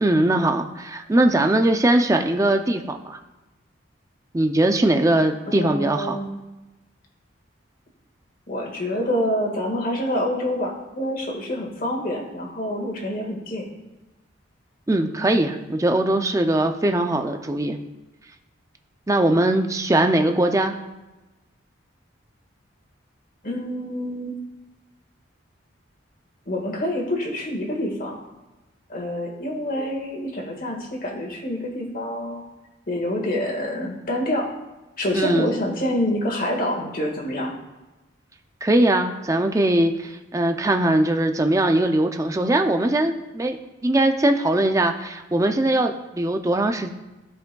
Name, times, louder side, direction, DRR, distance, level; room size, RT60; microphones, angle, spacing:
voice 1, 0.0-3.2 4.3-6.2 14.9-17.8 19.1-20.8 35.1-35.5 38.6-46.9, right 1 dB, 15° right, 5 dB, 0.4 m, -21 dB
voice 2, 5.4-6.3 8.5-13.6 23.4-24.4 26.5-28.2 28.9-32.4 32.9-34.5 35.0-37.5, left 1 dB, 45° left, 0 dB, 1.6 m, -27 dB
15.0 x 5.2 x 2.3 m, 1.1 s
head